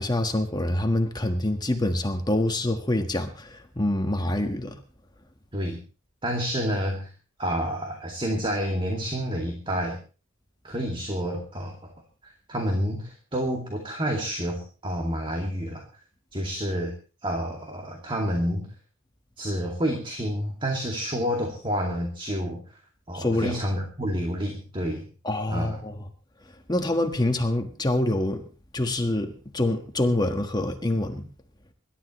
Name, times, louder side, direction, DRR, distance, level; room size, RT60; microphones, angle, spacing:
voice 1, 0.0-4.7 23.1-23.5 25.2-26.0 26.7-28.4 28.7-31.3, left 1 dB, 20° left, 5 dB, 1.5 m, -26 dB
voice 2, 6.2-7.1 7.4-10.0 10.6-11.9 12.2-15.8 16.3-16.9 17.2-18.7 19.4-22.6 23.1-25.0 25.5-25.8, equal, 25° right, 1 dB, 2.4 m, -29 dB
25.5 x 12.5 x 3.2 m, 0.35 s
head